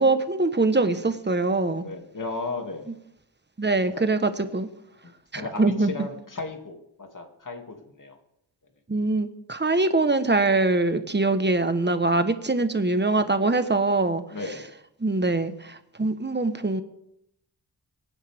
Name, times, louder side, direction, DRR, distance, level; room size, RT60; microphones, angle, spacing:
voice 1, 0.0-1.8 3.6-4.7 5.3-5.9 8.9-14.2 15.0-16.8, right 2 dB, 25° right, 10 dB, 1.2 m, -23 dB
voice 2, 1.8-2.9 3.9-4.0 5.4-8.2 10.8-11.0 13.1-13.3 14.3-14.7, left 3 dB, 45° left, 3 dB, 2.6 m, -35 dB
25.0 x 10.0 x 3.6 m, 0.79 s
wide cardioid pair, 75°, 43 cm